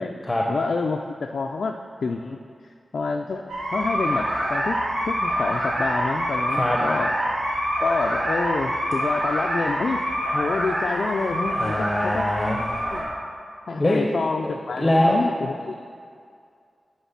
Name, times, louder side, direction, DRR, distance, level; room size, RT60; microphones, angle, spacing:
voice 1, 0.5-2.4 2.6-3.4 3.7-4.8 5.0-7.1 7.8-10.0 10.3-12.3 12.9-13.0 13.7-15.9, left 4 dB, 70° left, 2 dB, 0.4 m, -28 dB
sound 1, 3.5-13.0, equal, 75° right, 2.1 m, -26 dB
voice 2, 11.5-12.6 13.8-14.0 14.8-15.2, left 1 dB, 20° left, -1 dB, 0.8 m, -22 dB
10.5 x 4.5 x 5.7 m, 2.3 s
wide cardioid pair, 130°, 0 cm